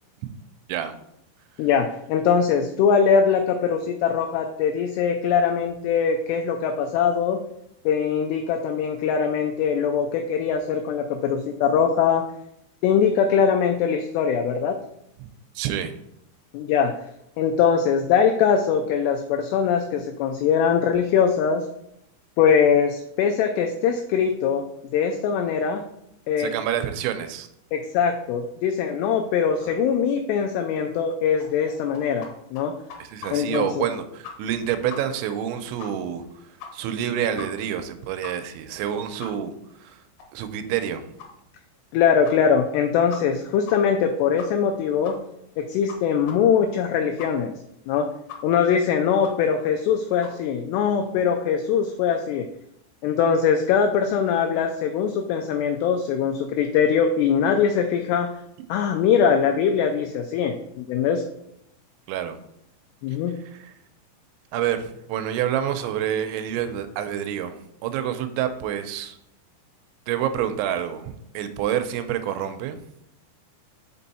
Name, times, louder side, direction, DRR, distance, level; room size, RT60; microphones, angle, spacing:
voice 1, 1.6-7.4 7.9-12.2 12.8-14.8 16.5-16.9 17.4-21.7 22.4-24.6 24.9-25.8 26.3-26.5 27.7-32.7 33.3-33.8 41.9-45.2 45.6-47.5 47.9-48.1 48.4-52.5 53.0-58.3 58.7-61.2 63.0-63.3, left 7 dB, 85° left, 4 dB, 2.4 m, -22 dB
voice 2, 15.6-16.0 26.4-27.5 29.6-29.8 33.0-39.5 39.8-40.0 40.3-41.1 62.1-62.4 63.4-63.7 64.5-69.2 70.1-72.8, right 10 dB, 85° right, 9 dB, 2.8 m, -28 dB
sound 1, 31.4-32.3 32.6-32.7 32.9-33.6 33.9-34.0 34.2-34.6 34.9-35.0 35.3-35.4 35.8-35.9 36.2-36.3 36.6-37.0 37.4-37.5 37.8-37.9 38.2-38.3 38.7-38.8 39.2-39.3 39.7-39.8 40.2-40.3 40.7-40.8 41.2-41.3 41.7-41.8 42.2-42.4 42.7-42.8 43.1-43.4 43.7-43.8 44.0-44.1 44.4-44.7 45.0-45.2 45.5-45.6 45.9-46.0 46.3-46.4 46.7-46.8 47.2-47.3 47.7-47.8 48.3-48.4 48.7-48.8 49.2-49.3 49.7-49.8 50.2-50.3, left 6 dB, 70° left, 2.5 m, -39 dB
5.7 x 5.4 x 4.1 m, 0.78 s
omnidirectional pair, 5.4 m